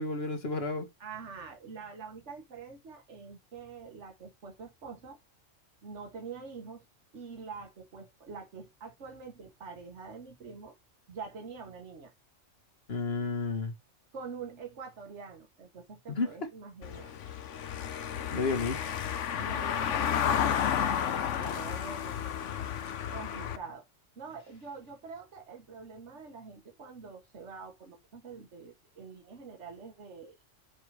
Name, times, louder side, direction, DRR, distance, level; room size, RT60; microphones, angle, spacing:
voice 1, 0.0-0.9 12.9-13.7 16.1-16.3 18.3-18.9, left 3 dB, 55° left, 1.8 m, -31 dB
voice 2, 1.0-5.2 5.8-6.9 7.1-10.7 11.1-12.1 14.1-17.2 19.4-20.1 20.4-22.2 23.1-23.9 24.2-30.4, right 5 dB, 65° right, 1.8 m, -45 dB
Car passing by / Engine, 16.8-23.6, left 8 dB, 75° left, 1.2 m, -32 dB
6.2 x 4.8 x 4.9 m
omnidirectional pair, 1.3 m